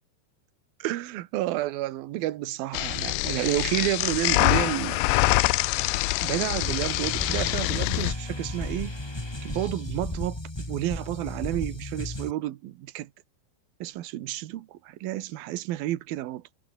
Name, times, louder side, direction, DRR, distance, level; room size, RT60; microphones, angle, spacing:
voice 1, 0.8-5.1 5.8-5.9 6.2-9.0 9.4-13.1 13.8-16.6, right 15 dB, 70° right, 2.8 m, -31 dB
sound 1, 2.7-8.1, left 21 dB, 85° left, 2.9 m, -25 dB
sound 2, 6.6-12.3, left 1 dB, 10° left, 1.1 m, -34 dB
omnidirectional pair, 5.0 m